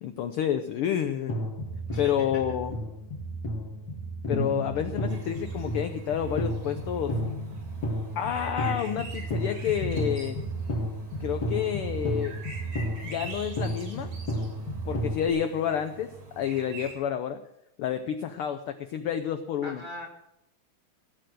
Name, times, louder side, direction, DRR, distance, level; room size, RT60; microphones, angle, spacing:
voice 1, 0.0-1.4 2.0-2.8 4.3-7.2 8.1-10.4 11.2-12.4 13.0-14.1 14.8-16.1 16.4-17.4 17.8-19.8, left 9 dB, 85° left, 8 dB, 1.2 m, -29 dB
sound 1, 1.3-15.3, equal, 45° left, 2.1 m, -32 dB
voice 2, 1.9-2.4 19.6-20.1, left 1 dB, 20° right, -2 dB, 1.3 m, -40 dB
sound 2, 5.1-16.9, right 2 dB, 85° right, 4.7 m, -46 dB
16.5 x 6.8 x 7.7 m, 0.83 s
omnidirectional pair, 3.3 m